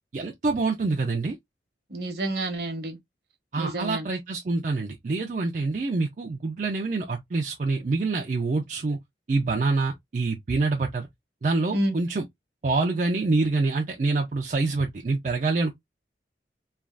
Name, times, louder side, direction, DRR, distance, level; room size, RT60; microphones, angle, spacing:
voice 1, 0.1-1.4 3.5-9.0 9.3-11.1 11.4-12.2 12.6-15.7, right 3 dB, 45° right, 0.4 m, -26 dB
voice 2, 1.9-3.0 3.6-4.1 11.7-12.0, right 1 dB, 60° right, 0.9 m, -29 dB
3.2 x 2.3 x 2.3 m
head